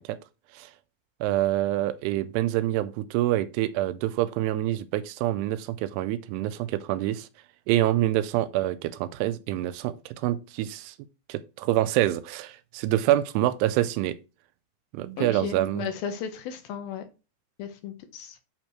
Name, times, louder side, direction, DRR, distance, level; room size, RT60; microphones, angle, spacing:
voice 1, 1.2-7.3 7.7-10.9 11.3-14.2 14.9-15.9, right 14 dB, 85° right, 2.6 m, -26 dB
voice 2, 15.2-17.0 17.6-18.4, left 8 dB, 75° left, 2.4 m, -35 dB
7.9 x 4.5 x 4.5 m
omnidirectional pair, 4.7 m